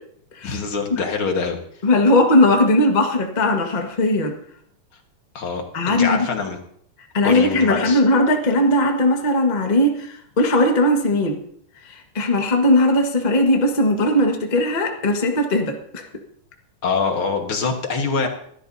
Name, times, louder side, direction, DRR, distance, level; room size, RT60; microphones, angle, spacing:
voice 1, 0.4-1.6 5.4-6.6 7.2-8.0 16.8-18.3, left 4 dB, 50° left, 3 dB, 1.9 m, -24 dB
voice 2, 1.8-4.3 5.7-6.3 7.1-11.4 11.8-16.0, left 1 dB, 75° left, 2 dB, 0.4 m, -18 dB
25.0 x 13.0 x 2.7 m, 0.66 s
omnidirectional pair, 3.8 m